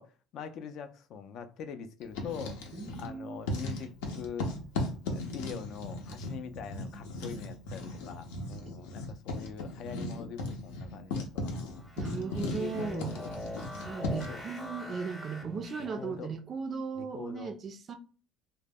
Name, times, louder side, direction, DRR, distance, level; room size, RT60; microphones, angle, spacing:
voice 1, 0.0-2.6 3.0-4.5 5.1-11.8 12.5-13.3 14.3-14.4 16.0-16.3 17.0-17.5, left 7 dB, 55° left, 0.3 m, -43 dB
Writing, 2.0-3.1 3.4-14.4, left 2 dB, 90° left, 0.6 m, -37 dB
voice 2, 2.7-3.4 8.3-8.7 12.0-13.1 13.8-18.0, right 5 dB, 35° right, 0.3 m, -37 dB
sound 1, 11.7-16.2, equal, 10° left, 0.7 m, -43 dB
2.0 x 2.0 x 3.4 m
cardioid pair, 115°, 0 cm